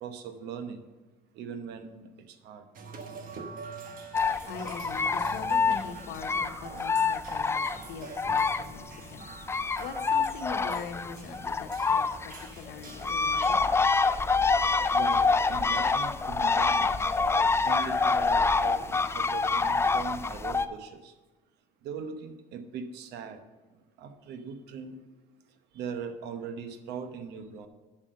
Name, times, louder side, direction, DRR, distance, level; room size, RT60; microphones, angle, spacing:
voice 1, 0.0-0.9 1.3-2.7 14.9-17.1 17.6-21.1 21.8-23.4 24.0-25.0 25.7-27.7, right 6 dB, 80° right, 8 dB, 0.9 m, -40 dB
sound 1, 2.8-13.5, right 4 dB, 55° right, 1.1 m, -45 dB
sound 2, 4.1-8.9 9.2-20.7, left 4 dB, 15° left, 0.4 m, -26 dB
voice 2, 4.2-13.7, left 5 dB, 85° left, 7 dB, 1.0 m, -42 dB
7.5 x 6.3 x 6.4 m, 1.2 s
cardioid pair, 110°, 17 cm